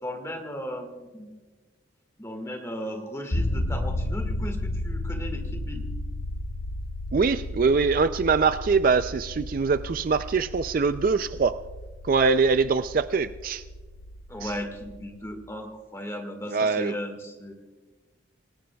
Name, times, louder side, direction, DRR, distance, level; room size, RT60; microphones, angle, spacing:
voice 1, 0.0-1.3 2.2-5.8 14.3-17.5, equal, 15° left, 4 dB, 1.7 m, -36 dB
sound 1, 3.3-15.2, left 1 dB, 65° left, 1.1 m, -33 dB
voice 2, 7.1-11.6 12.0-13.6 14.4-14.5 16.5-16.9, right 4 dB, 45° right, 11 dB, 0.3 m, -23 dB
28.5 x 17.5 x 2.3 m, 1.3 s
head